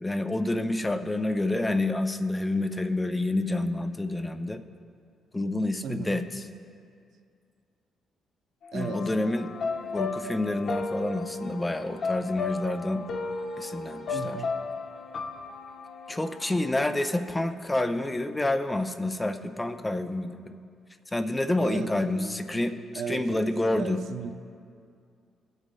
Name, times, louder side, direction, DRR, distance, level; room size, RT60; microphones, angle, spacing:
voice 1, 0.0-4.6 5.3-6.4 8.7-9.5 9.9-13.0 13.6-14.4 16.1-20.6 21.1-22.8 23.1-24.0, left 2 dB, 15° left, 9 dB, 0.6 m, -28 dB
voice 2, 5.8-6.2 8.7-9.0 14.1-14.5 21.6-22.4 22.9-24.3, right 7 dB, 70° right, 7 dB, 0.6 m, -37 dB
sound 1, 8.6-17.5, left 5 dB, 80° left, 1.1 m, -50 dB
sound 2, 8.8-17.0, left 4 dB, 55° left, 0.7 m, -35 dB
22.5 x 8.0 x 2.3 m, 2.3 s
cardioid pair, 90°, 0 cm